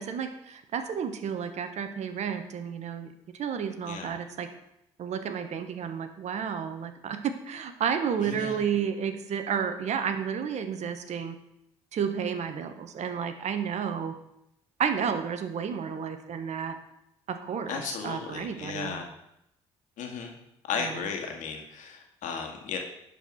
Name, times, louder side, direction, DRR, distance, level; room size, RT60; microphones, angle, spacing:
voice 1, 0.0-4.5 5.0-11.4 11.9-14.1 14.8-16.8 17.3-19.0 20.8-21.1, right 7 dB, 60° right, 9 dB, 1.2 m, -31 dB
voice 2, 8.3-8.6 17.7-19.1 20.0-20.3 20.6-22.8, left 6 dB, 70° left, 3 dB, 1.9 m, -35 dB
11.0 x 4.7 x 6.3 m, 0.82 s
supercardioid pair, 60°, 13 cm